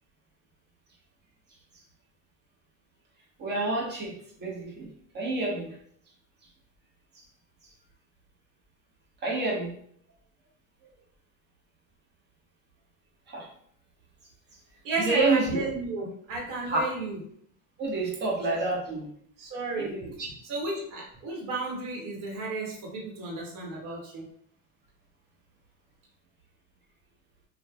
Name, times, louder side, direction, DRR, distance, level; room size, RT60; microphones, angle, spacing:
voice 1, 3.4-4.9 5.1-5.8 9.2-9.7 13.3-13.5 15.0-15.6 16.7-16.9 17.8-19.1 19.8-20.3, right 3 dB, 20° right, -2 dB, 0.7 m, -28 dB
voice 2, 14.8-17.2 19.4-19.9 20.4-24.2, right 2 dB, 45° right, -2 dB, 1.0 m, -33 dB
3.0 x 2.2 x 2.3 m, 0.63 s
supercardioid pair, 125°, 48 cm